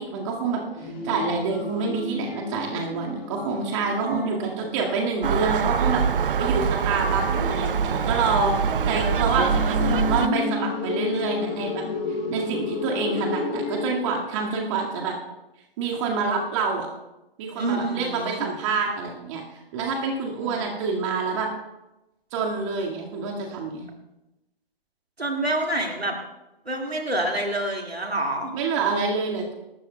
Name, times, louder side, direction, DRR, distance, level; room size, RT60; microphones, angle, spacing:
voice 1, 0.0-11.8 12.3-15.2 15.8-16.9 17.4-19.4 19.7-21.5 22.3-23.9 28.5-29.5, right 4 dB, 30° right, 0 dB, 2.0 m, -27 dB
sound 1, 0.8-6.0 6.8-13.9, left 4 dB, 30° left, 4.9 m, -32 dB
voice 2, 4.0-4.9 17.5-18.5 20.4-20.7 25.2-26.2 26.7-28.5, right 1 dB, 85° right, 2 dB, 2.2 m, -28 dB
Gull seagull, 5.2-10.3, right 7 dB, 60° right, 0.4 m, -24 dB
25.5 x 13.0 x 2.3 m, 0.98 s
figure-of-eight pair, 130°, 30 cm